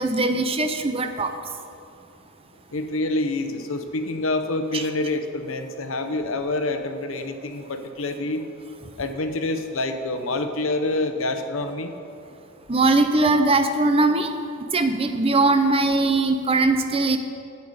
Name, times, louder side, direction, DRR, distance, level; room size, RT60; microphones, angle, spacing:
voice 1, 0.0-1.3 4.7-4.8 12.7-14.3 14.7-17.2, right 3 dB, 30° right, 7 dB, 0.7 m, -20 dB
voice 2, 2.7-8.5 9.0-11.9, left 2 dB, 85° left, 8 dB, 0.9 m, -27 dB
12.5 x 8.4 x 5.0 m, 2.6 s
head